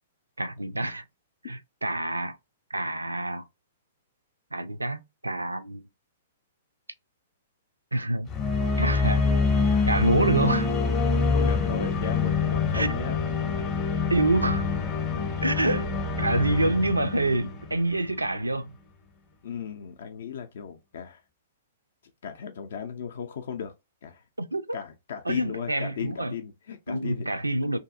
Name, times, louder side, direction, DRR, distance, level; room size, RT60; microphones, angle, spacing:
voice 1, 0.4-1.0 1.4-2.4 2.7-3.5 4.5-5.8 7.9-8.4 8.8-9.3 9.9-10.7 12.7-12.9 14.1-14.7 15.4-15.9 16.2-18.7 24.4-24.8 25.3-26.3 26.9-27.8, right 2 dB, 80° right, 0.3 m, -27 dB
sound 1, 8.3-18.3, left 4 dB, 20° left, 0.7 m, -26 dB
voice 2, 11.3-13.2 13.6-13.7 15.4-15.5 16.5-16.6 19.4-21.2 22.2-23.7 24.0-24.2 24.7-27.4, left 7 dB, 55° left, 0.4 m, -36 dB
2.6 x 2.5 x 2.4 m
figure-of-eight pair, 110°, 0 cm